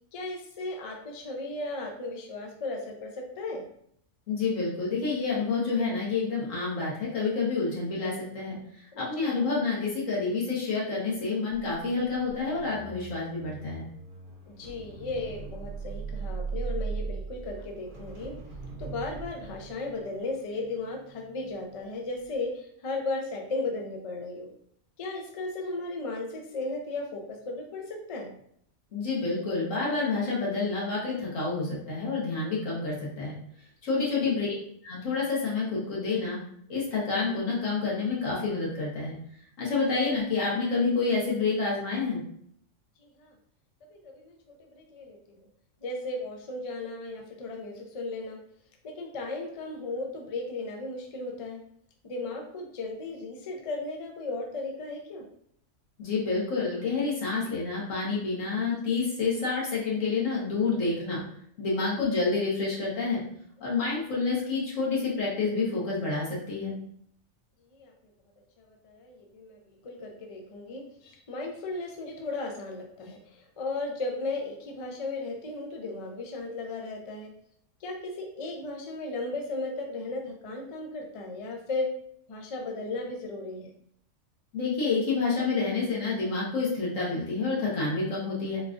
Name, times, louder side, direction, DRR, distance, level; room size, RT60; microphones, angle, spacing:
voice 1, 0.1-3.7 8.9-9.5 14.5-18.3 18.8-24.5 25.0-28.3 34.1-34.4 43.0-43.3 43.9-45.5 45.8-48.4 48.8-51.6 52.0-55.2 67.7-67.9 68.6-77.3 77.8-81.9 82.3-83.7, left 2 dB, 50° left, 1 dB, 0.4 m, -36 dB
voice 2, 4.3-8.6 9.0-13.8 28.9-33.3 33.8-34.5 34.8-36.4 36.7-39.1 39.6-42.2 56.0-61.2 61.6-63.2 63.6-66.7 84.5-88.6, left 4 dB, 90° left, -5 dB, 1.5 m, -28 dB
sound 1, 11.5-21.8 22.2-22.4, right 4 dB, 50° right, 0.7 m, -39 dB
3.9 x 2.4 x 2.4 m, 0.66 s
omnidirectional pair, 1.3 m